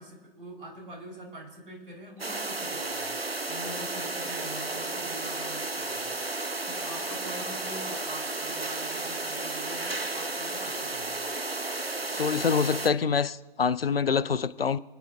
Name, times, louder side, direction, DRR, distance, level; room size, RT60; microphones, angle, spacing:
voice 1, 0.0-3.2 3.5-6.2 6.7-11.3, right 1 dB, 65° right, 3.9 m, -44 dB
sound 1, 2.2-12.9, right 2 dB, 85° right, 1.0 m, -33 dB
voice 2, 12.1-14.8, left 6 dB, 75° left, 0.7 m, -26 dB
28.0 x 10.0 x 2.5 m
figure-of-eight pair, 120°, 29 cm